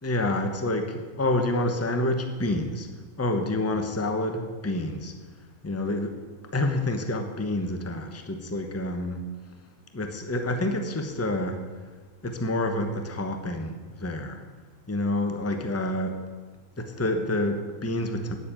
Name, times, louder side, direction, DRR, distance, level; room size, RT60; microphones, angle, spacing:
voice 1, 0.0-2.9 3.2-5.1 5.6-6.2 6.5-9.3 9.9-11.6 12.2-14.4 14.9-16.2 16.8-18.4, left 1 dB, 10° left, 6 dB, 0.9 m, -28 dB
9.4 x 7.6 x 8.7 m, 1.4 s
omnidirectional pair, 1.5 m